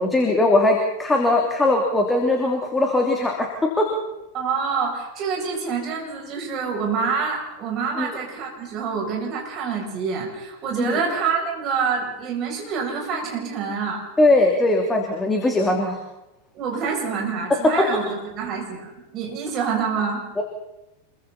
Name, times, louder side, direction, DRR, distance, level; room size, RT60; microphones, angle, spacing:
voice 1, 0.0-3.5 3.8-3.9 8.0-8.1 10.8-11.0 14.2-16.0 20.4-20.5, left 2 dB, 10° left, 2 dB, 2.9 m, -20 dB
voice 2, 4.3-14.0 16.5-20.2, right 5 dB, 35° right, -1 dB, 7.6 m, -26 dB
27.0 x 23.0 x 4.3 m, 0.94 s
figure-of-eight pair, 90°, 0 cm